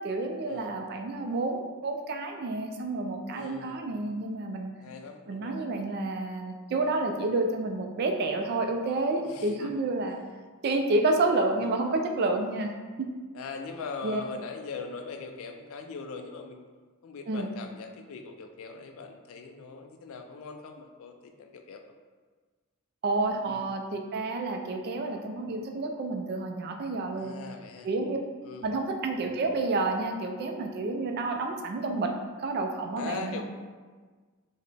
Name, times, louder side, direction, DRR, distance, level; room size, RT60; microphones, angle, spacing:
voice 1, 0.0-4.7 5.3-10.2 10.6-12.7 13.0-13.1 14.0-14.2 17.3-17.5 23.0-27.3 27.8-28.2 28.6-32.1 32.4-33.4, right 2 dB, 45° right, 4 dB, 0.3 m, -29 dB
voice 2, 3.3-3.8 4.8-5.6 9.2-9.8 11.4-11.7 13.3-16.7 17.0-21.8 23.5-23.6 27.2-27.9 28.4-28.7 33.0-33.4, left 4 dB, 65° left, 5 dB, 0.3 m, -41 dB
3.9 x 2.1 x 3.3 m, 1.4 s
head